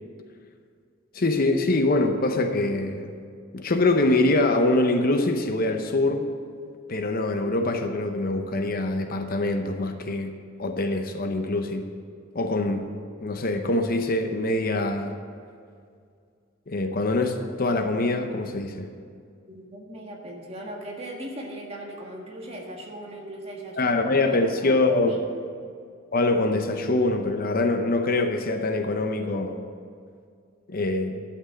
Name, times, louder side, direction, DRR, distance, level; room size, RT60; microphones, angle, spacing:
voice 1, 1.1-3.1 3.5-6.3 6.9-11.8 12.3-13.0 13.2-15.2 16.7-18.9 23.8-25.1 26.1-29.6 30.7-31.2, left 2 dB, 45° left, 0.7 m, -24 dB
voice 2, 19.5-25.2, right 1 dB, 30° right, 1.7 m, -39 dB
11.5 x 6.0 x 8.8 m
head